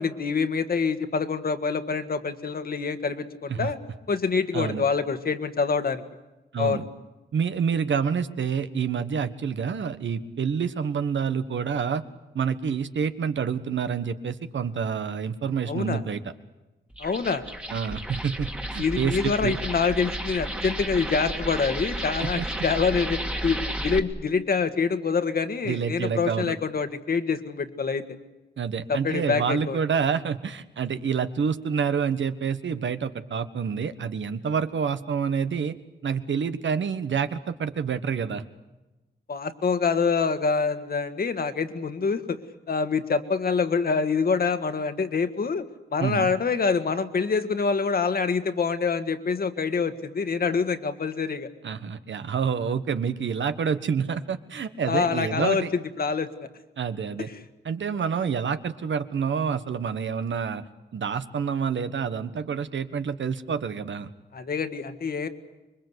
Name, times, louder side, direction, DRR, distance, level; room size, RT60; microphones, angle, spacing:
voice 1, 0.0-3.8 4.1-6.0 6.6-6.8 15.7-16.0 17.0-17.4 18.8-28.0 28.9-29.8 39.3-42.4 42.7-45.7 45.9-51.5 54.9-56.5 57.3-57.4 64.3-65.3, left 5 dB, 55° left, 9 dB, 1.7 m, -26 dB
voice 2, 6.5-6.8 7.3-12.0 12.3-16.2 17.7-19.6 22.2-22.4 25.6-26.5 28.6-35.7 36.0-38.4 46.0-46.3 51.6-55.7 56.8-57.3 57.6-60.6 60.9-64.1, right 6 dB, 85° right, 10 dB, 1.4 m, -28 dB
sound 1, 16.9-24.0, right 1 dB, 5° right, 1.7 m, -32 dB
26.0 x 23.5 x 8.2 m, 1.1 s
wide cardioid pair, 170°, 19 cm